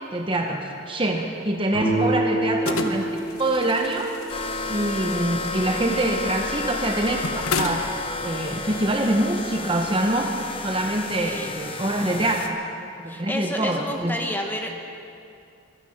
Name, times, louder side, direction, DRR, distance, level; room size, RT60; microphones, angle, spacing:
voice 1, 0.1-4.1 4.7-7.9 8.2-10.3 10.6-12.6 13.0-14.2, right 1 dB, 25° right, 3 dB, 0.9 m, -25 dB
sound 1, 1.7-5.3, right 1 dB, 85° right, 5.0 m, -28 dB
sound 2, 2.7-8.7, left 4 dB, 85° left, 1.0 m, -33 dB
sound 3, 4.3-12.5, left 3 dB, 25° left, 0.9 m, -32 dB
voice 2, 11.2-11.6 13.1-14.7, left 1 dB, 10° left, 2 dB, 1.2 m, -30 dB
23.0 x 9.8 x 5.9 m, 2.6 s
head